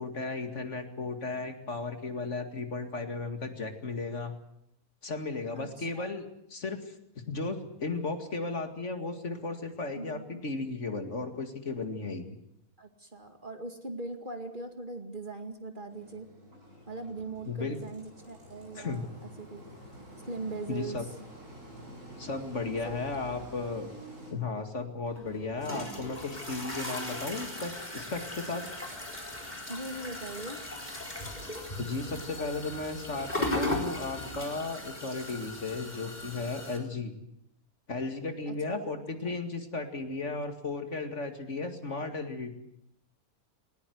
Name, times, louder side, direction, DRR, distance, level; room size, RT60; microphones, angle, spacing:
voice 1, 0.0-4.3 5.0-6.2 6.5-6.9 7.3-12.4 17.5-17.8 18.8-19.0 20.7-21.1 22.2-23.9 24.3-28.6 31.8-37.1 37.9-42.5, left 3 dB, 55° left, 6 dB, 2.5 m, -35 dB
voice 2, 5.5-6.2 9.9-10.4 12.8-16.3 16.9-19.6 20.3-21.0 22.8-23.5 29.7-30.6 38.5-39.1, right 2 dB, 35° right, 6 dB, 2.3 m, -41 dB
Engine, 15.9-24.3, equal, 60° right, 7.3 m, -48 dB
sound 1, 25.1-36.8, left 1 dB, 30° left, 4.4 m, -37 dB
20.0 x 19.5 x 9.4 m, 0.78 s
omnidirectional pair, 1.5 m